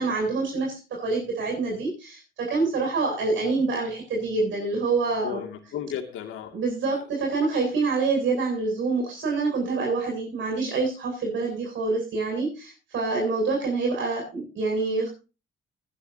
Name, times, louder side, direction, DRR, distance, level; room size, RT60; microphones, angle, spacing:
voice 1, 0.0-5.4 6.5-15.1, right 3 dB, 70° right, -2 dB, 7.8 m, -26 dB
voice 2, 5.2-6.5 6.9-7.0, left 9 dB, 85° left, 6 dB, 2.5 m, -34 dB
21.5 x 10.0 x 2.8 m, 0.31 s
cardioid pair, 90°, 20 cm